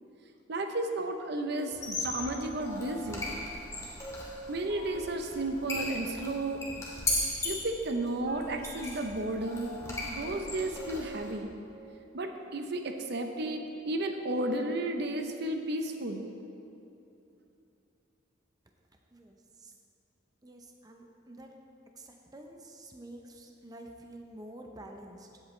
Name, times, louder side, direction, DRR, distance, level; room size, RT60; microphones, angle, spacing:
voice 1, 0.5-3.3 4.5-6.7 7.4-9.7 10.0-11.5 12.1-16.3, right 2 dB, 55° right, 5 dB, 0.7 m, -33 dB
Squeak, 1.7-11.3, left 2 dB, 15° left, 1.9 m, -37 dB
voice 2, 19.1-19.7 20.4-21.5 21.9-25.4, right 1 dB, 20° right, 2 dB, 0.6 m, -49 dB
16.0 x 8.1 x 3.2 m, 2.8 s
head